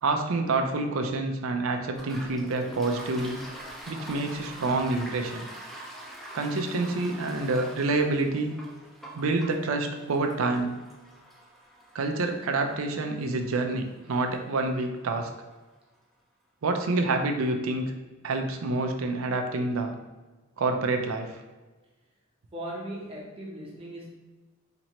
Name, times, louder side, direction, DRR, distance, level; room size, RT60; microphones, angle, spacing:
voice 1, 0.0-3.4 3.9-5.5 6.3-8.6 9.1-10.7 11.9-15.3 16.6-17.9 18.2-19.9 20.6-21.4, right 3 dB, 70° right, 4 dB, 0.5 m, -27 dB
Toilet flush, 1.9-15.3, right 1 dB, ahead, 0.6 m, -45 dB
voice 2, 22.5-24.1, right 1 dB, 25° right, -3 dB, 0.8 m, -38 dB
4.3 x 3.0 x 2.9 m, 1.2 s
head